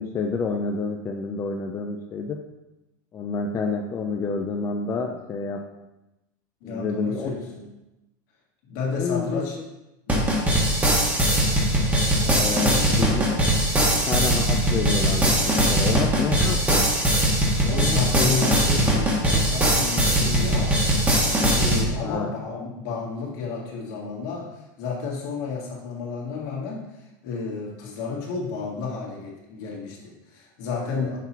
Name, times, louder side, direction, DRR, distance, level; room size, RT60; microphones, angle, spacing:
voice 1, 0.0-2.4 3.1-5.6 6.6-7.3 8.9-9.6 11.5-11.6 12.2-13.4 13.9-16.9 17.6-18.5 22.0-22.4 30.8-31.1, left 4 dB, 25° left, 2 dB, 0.5 m, -29 dB
voice 2, 6.6-7.7 8.7-9.6 10.1-10.3 12.6-12.9 17.7-20.8 21.5-31.2, left 4 dB, 65° left, -3 dB, 1.9 m, -32 dB
sound 1, 10.1-21.8, right 1 dB, 15° right, 1.3 m, -21 dB
6.0 x 2.9 x 5.6 m, 0.97 s
supercardioid pair, 125°, 10 cm